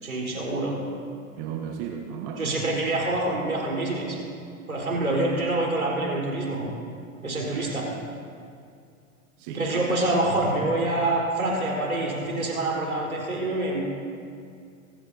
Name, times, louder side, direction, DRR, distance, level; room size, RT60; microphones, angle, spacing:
voice 1, 0.0-0.8 2.4-4.2 4.7-6.7 7.2-7.9 9.5-13.8, right 2 dB, 90° right, -3 dB, 4.0 m, -26 dB
voice 2, 1.4-2.6 5.1-5.2 7.5-7.7 9.4-10.0, right 8 dB, 45° right, 2 dB, 1.5 m, -35 dB
23.5 x 15.0 x 2.7 m, 2.4 s
figure-of-eight pair, 95°, 41 cm